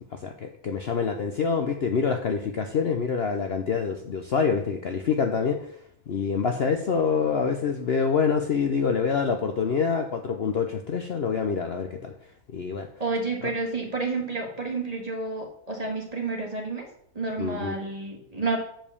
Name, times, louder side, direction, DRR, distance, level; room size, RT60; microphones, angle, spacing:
voice 1, 0.1-5.7 6.1-12.1 12.5-12.9 13.4-13.5 17.4-17.7, left 6 dB, 50° left, 5 dB, 0.8 m, -26 dB
voice 2, 13.0-16.9 17.2-18.6, right 3 dB, 25° right, 1 dB, 1.9 m, -30 dB
7.3 x 5.2 x 6.9 m, 0.67 s
omnidirectional pair, 1.6 m